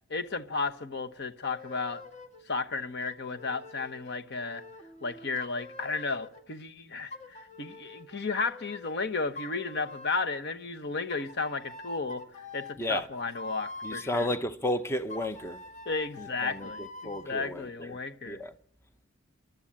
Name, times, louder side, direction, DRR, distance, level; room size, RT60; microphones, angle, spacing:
voice 1, 0.1-2.0 2.5-4.6 5.0-12.2 12.5-14.3 15.9-18.4, left 4 dB, 55° left, 1.1 m, -33 dB
sound 1, 1.4-2.4 3.0-6.4 7.1-9.0 9.3-10.4 11.1-14.4 15.1-17.3, left 2 dB, 35° left, 1.8 m, -45 dB
voice 2, 13.8-15.6 16.2-16.7 17.0-17.9 18.3-18.5, left 1 dB, 10° left, 0.8 m, -32 dB
27.5 x 12.5 x 8.7 m
head